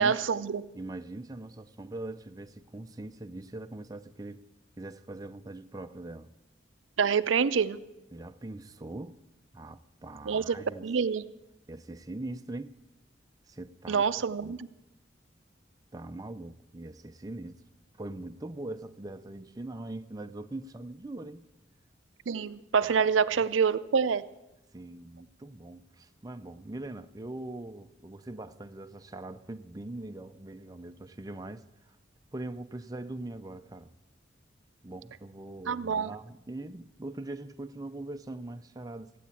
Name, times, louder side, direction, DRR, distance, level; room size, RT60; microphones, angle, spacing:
voice 1, 0.0-0.6 7.0-7.8 10.3-10.6 10.8-11.2 13.9-14.7 22.3-24.2 35.7-36.1, right 6 dB, 90° right, 14 dB, 0.5 m, -26 dB
voice 2, 0.7-4.4 4.8-6.3 8.1-9.2 9.5-10.9 11.7-12.7 13.5-14.0 14.4-14.6 15.9-17.6 18.0-21.4 22.8-23.1 23.4-23.5 24.7-32.0 32.3-33.9 34.8-39.2, right 2 dB, 20° right, 8 dB, 0.5 m, -42 dB
14.5 x 9.2 x 8.4 m, 0.93 s
head